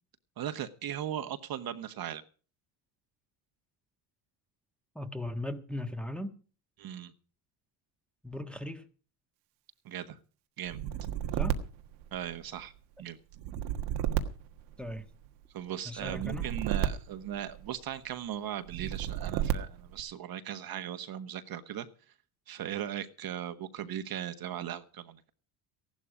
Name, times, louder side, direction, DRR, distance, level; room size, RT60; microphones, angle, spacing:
voice 1, 0.4-2.2 6.8-7.1 9.8-10.2 10.6-10.8 12.1-12.7 13.0-13.2 15.5-21.9 22.5-25.3, right 10 dB, 50° right, 1.4 m, -38 dB
voice 2, 4.9-6.3 8.2-8.8 11.3-11.6 14.8-15.0 15.8-16.4, left 1 dB, ahead, 1.5 m, -38 dB
sound 1, 10.7-12.6 13.3-15.3 16.0-17.9 18.7-20.0, right 11 dB, 85° right, 1.6 m, -33 dB
15.0 x 12.0 x 5.0 m
supercardioid pair, 90°, 46 cm